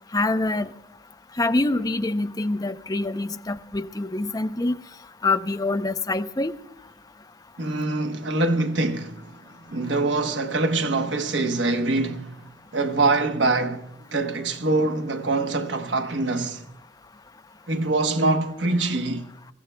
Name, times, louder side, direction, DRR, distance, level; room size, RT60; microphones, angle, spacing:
voice 1, 0.1-0.7 1.4-4.8 5.2-6.5, left 2 dB, 20° left, 0.5 m, -25 dB
voice 2, 7.6-9.4 9.7-12.4 12.7-16.6 17.7-19.3, right 2 dB, 85° right, 1.0 m, -24 dB
28.0 x 15.5 x 2.2 m
head